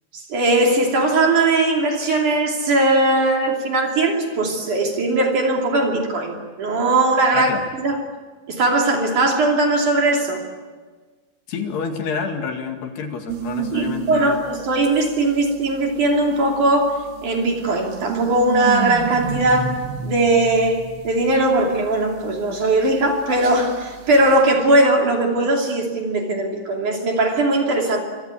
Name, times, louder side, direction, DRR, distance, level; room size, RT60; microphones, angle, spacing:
voice 1, 0.1-7.5 7.8-8.0 8.5-10.4 13.7-28.0, right 2 dB, 45° right, 1 dB, 3.8 m, -19 dB
voice 2, 11.5-14.4, left 6 dB, 65° left, 4 dB, 4.0 m, -28 dB
sound 1, 13.3-25.1, right 8 dB, 80° right, 4.8 m, -32 dB
26.0 x 25.0 x 8.5 m, 1.4 s
omnidirectional pair, 5.4 m